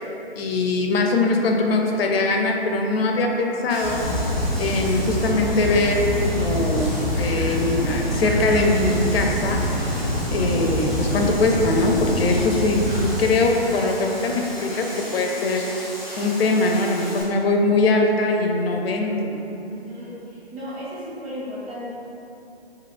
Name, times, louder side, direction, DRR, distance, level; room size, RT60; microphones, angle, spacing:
voice 1, 0.4-4.0 4.6-6.9 7.1-15.7 16.2-19.3, left 2 dB, 65° left, 2 dB, 0.5 m, -22 dB
sound 1, 3.7-17.2, equal, ahead, 0.6 m, -36 dB
sound 2, 3.8-13.2, equal, 35° right, 0.8 m, -25 dB
voice 2, 19.7-21.9, equal, 70° right, -8 dB, 1.5 m, -35 dB
2.8 x 2.4 x 3.7 m, 2.9 s
figure-of-eight pair, 135°, 32 cm